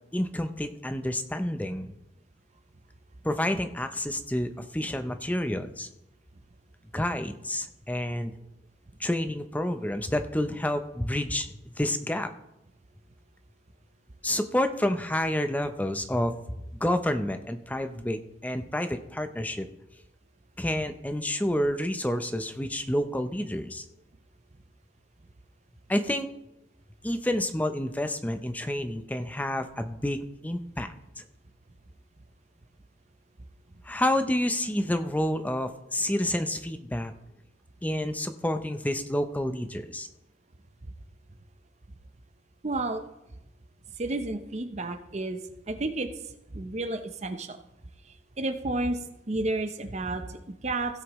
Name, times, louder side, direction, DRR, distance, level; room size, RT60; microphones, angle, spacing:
voice 1, 0.1-1.9 3.2-5.9 6.9-8.3 9.0-11.5 11.8-12.3 14.2-16.3 16.8-19.7 20.6-23.8 25.9-26.3 27.0-30.9 31.2-31.3 33.8-37.1 37.8-40.1, left 1 dB, 10° left, 8 dB, 0.6 m, -29 dB
voice 2, 42.6-43.0 44.0-45.4 45.7-46.1 46.5-47.6 48.4-49.0 49.3-51.0, right 2 dB, 40° right, 8 dB, 0.7 m, -31 dB
16.5 x 7.8 x 3.1 m, 0.89 s
head